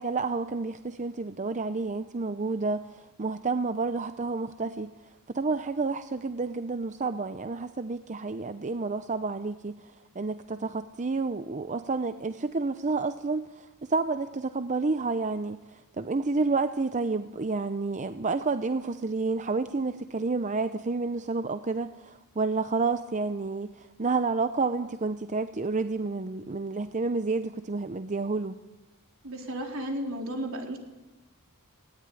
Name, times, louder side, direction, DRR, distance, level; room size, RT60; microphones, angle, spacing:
voice 1, 0.0-4.9 5.3-9.8 10.2-28.6, right 3 dB, 35° right, 11 dB, 0.7 m, -30 dB
voice 2, 29.2-30.8, right 1 dB, 65° right, 3 dB, 3.8 m, -33 dB
18.5 x 17.5 x 9.9 m, 1.1 s
head